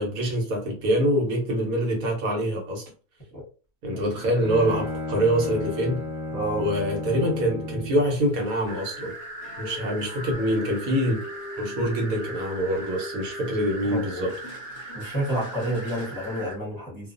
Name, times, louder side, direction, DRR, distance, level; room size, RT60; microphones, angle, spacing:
voice 1, 0.0-2.8 3.8-6.0 6.6-9.1 9.6-11.2 11.6-14.3, equal, 80° right, 1.3 m, -25 dB
Bowed string instrument, 3.9-8.1, left 1 dB, 20° right, 0.5 m, -33 dB
voice 2, 6.3-6.7 13.8-14.3 14.9-17.1, right 1 dB, 15° left, 0.8 m, -30 dB
sound 1, 8.1-16.4, left 1 dB, 65° left, 0.7 m, -41 dB
sound 2, 8.7-16.5, right 3 dB, 55° right, 0.8 m, -40 dB
2.4 x 2.4 x 2.5 m
omnidirectional pair, 1.5 m